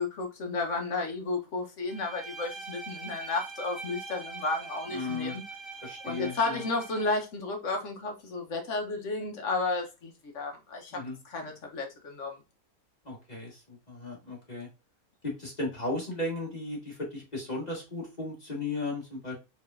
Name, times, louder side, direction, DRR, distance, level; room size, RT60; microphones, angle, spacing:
voice 1, 0.0-5.4 6.0-12.4, left 3 dB, 60° left, 1.2 m, -33 dB
Bowed string instrument, 1.9-7.2, right 4 dB, ahead, 0.7 m, -43 dB
voice 2, 4.9-5.4 5.8-6.6 10.9-11.2 13.0-14.7 15.2-19.3, left 2 dB, 30° left, 1.6 m, -35 dB
4.8 x 3.2 x 2.4 m
omnidirectional pair, 1.5 m